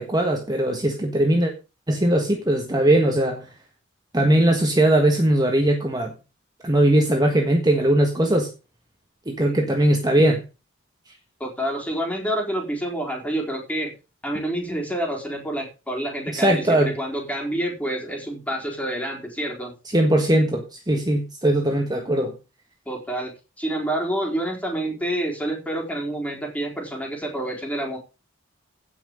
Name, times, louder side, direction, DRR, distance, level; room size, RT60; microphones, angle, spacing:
voice 1, 0.0-1.5 1.9-3.5 4.1-6.1 6.6-8.5 9.3-10.4 16.3-16.9 19.9-22.3, right 1 dB, 20° right, 1.5 m, -20 dB
voice 2, 11.4-13.9 14.2-19.7 22.9-23.3 23.6-28.0, right 1 dB, 5° left, 4.1 m, -28 dB
16.5 x 6.0 x 5.3 m
head